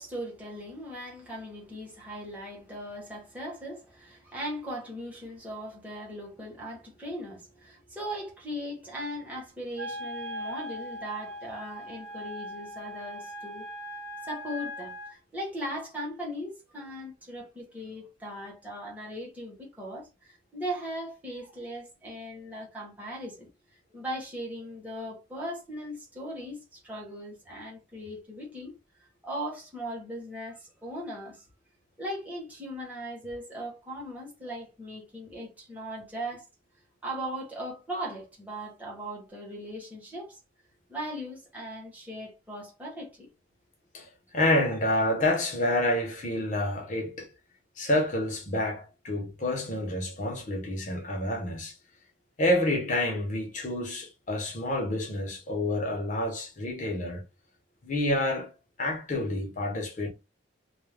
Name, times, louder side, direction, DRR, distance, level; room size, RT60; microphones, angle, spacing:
voice 1, 0.0-13.7 14.2-23.5 23.9-28.7 29.2-31.4 32.0-36.4 37.0-40.4 40.9-43.3 44.7-44.8, equal, 10° right, 0.9 m, -38 dB
Wind instrument woodwind instrument, 9.8-15.1, equal, 60° right, 0.8 m, -39 dB
voice 2, 44.3-47.3 47.8-51.8 52.4-57.2 57.8-58.5 58.8-60.1, left 1 dB, 40° left, 0.7 m, -28 dB
2.3 x 2.1 x 3.2 m
head